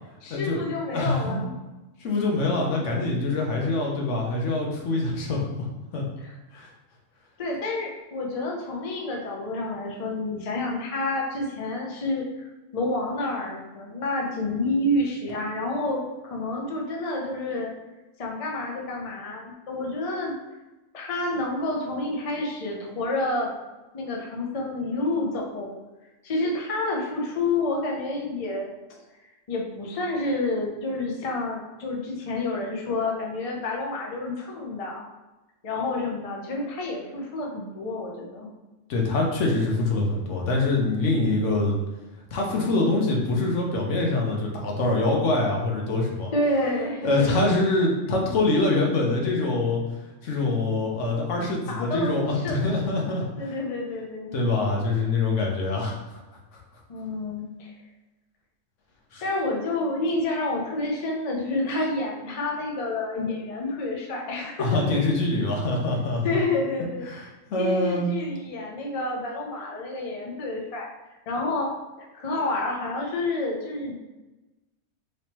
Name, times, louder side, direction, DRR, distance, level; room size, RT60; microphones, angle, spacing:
voice 1, 0.2-1.5 6.2-6.3 7.4-12.5 12.7-17.7 18.2-20.3 20.9-23.5 23.9-25.7 26.2-28.7 29.5-35.0 35.6-38.5 46.3-47.5 51.7-52.6 53.4-54.3 56.9-57.7 59.2-65.0 66.2-67.1 67.6-70.9 71.3-71.7 72.0-73.9, left 2 dB, 45° left, -1 dB, 0.5 m, -29 dB
voice 2, 0.9-1.4 2.0-5.7 5.9-6.0 6.5-6.7 38.9-41.8 42.3-46.3 47.0-49.8 50.2-53.5 54.3-56.2 59.1-59.2 64.6-66.4 67.1-68.1, left 2 dB, 70° left, -1 dB, 1.1 m, -24 dB
3.3 x 3.1 x 2.9 m, 1.1 s
omnidirectional pair, 1.4 m